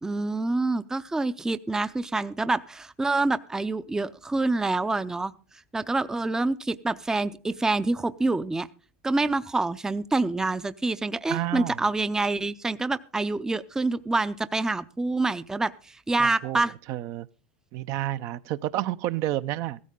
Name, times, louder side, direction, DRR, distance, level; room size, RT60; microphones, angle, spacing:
voice 1, 0.0-5.3 5.7-8.7 9.0-16.7, right 3 dB, 10° right, 0.5 m, -27 dB
voice 2, 11.3-11.8 16.2-16.6 16.9-17.3 17.7-19.8, right 14 dB, 55° right, 0.6 m, -30 dB
16.0 x 13.5 x 3.7 m
supercardioid pair, 115°, 6 cm